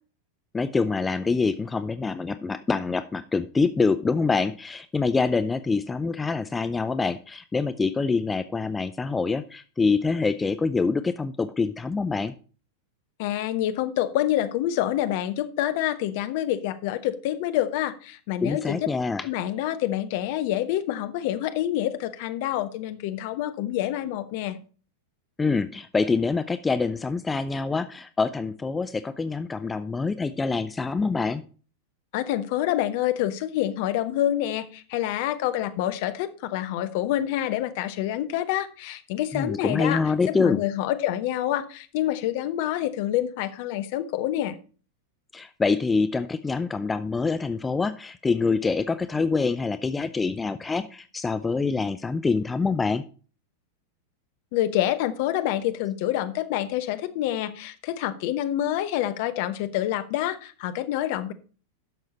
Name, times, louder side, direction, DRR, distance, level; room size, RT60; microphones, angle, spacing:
voice 1, 0.5-12.3 18.4-19.3 25.4-31.4 39.3-40.6 45.3-53.0, left 4 dB, 15° left, 12 dB, 0.4 m, -25 dB
voice 2, 13.2-18.9 19.2-24.6 32.1-44.6 54.5-61.3, left 12 dB, 50° left, 11 dB, 0.9 m, -27 dB
11.0 x 6.4 x 4.2 m, 0.39 s
figure-of-eight pair, 90°, 0 cm